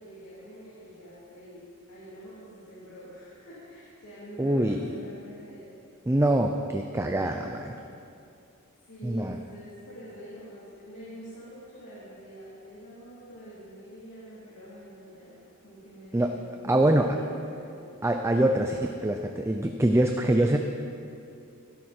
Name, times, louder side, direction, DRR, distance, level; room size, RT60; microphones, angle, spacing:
voice 1, 0.0-5.7 8.8-17.8, equal, 90° left, -9 dB, 3.4 m, -46 dB
voice 2, 4.4-4.9 6.1-7.8 9.0-9.4 16.1-16.4 16.7-17.2 18.0-20.6, right 1 dB, 10° right, 4 dB, 0.5 m, -24 dB
16.0 x 11.5 x 4.4 m, 2.6 s
head